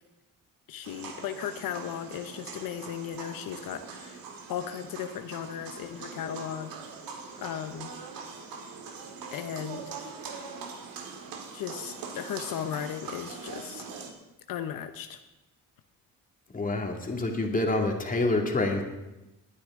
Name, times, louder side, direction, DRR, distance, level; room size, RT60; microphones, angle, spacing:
voice 1, 0.7-6.7 7.4-7.9 9.3-9.9 11.5-13.8 14.5-15.2, left 9 dB, 80° left, 8 dB, 0.9 m, -36 dB
sound 1, 0.8-14.1, right 5 dB, 85° right, 2.0 m, -42 dB
voice 2, 16.5-18.8, left 2 dB, 25° left, 2 dB, 2.3 m, -27 dB
20.0 x 9.8 x 3.7 m, 0.99 s
cardioid pair, 115°, 34 cm